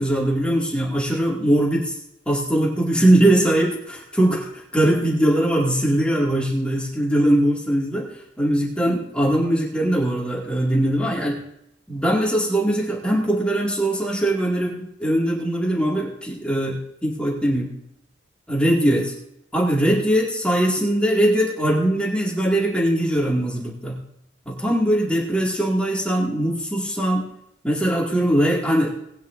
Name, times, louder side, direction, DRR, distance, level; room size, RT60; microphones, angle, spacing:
voice 1, 0.0-1.9 2.3-11.4 11.9-17.7 18.5-19.1 19.5-24.0 24.5-27.3 27.6-28.9, right 1 dB, 5° left, -5 dB, 2.2 m, -21 dB
19.0 x 10.0 x 2.6 m, 0.79 s
head